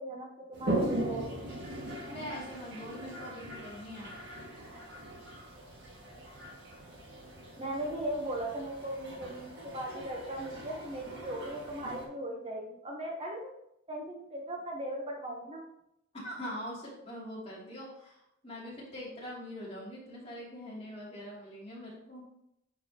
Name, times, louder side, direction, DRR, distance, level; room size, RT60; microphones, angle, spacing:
voice 1, 0.0-1.4 7.6-13.5 13.9-15.6, right 1 dB, 30° right, 0 dB, 0.8 m, -38 dB
Toilet flush, 0.5-12.0, right 1 dB, 55° right, 1.8 m, -40 dB
voice 2, 2.0-4.1 16.2-22.2, equal, 30° left, -6 dB, 2.5 m, -43 dB
9.5 x 4.8 x 2.8 m, 0.80 s
head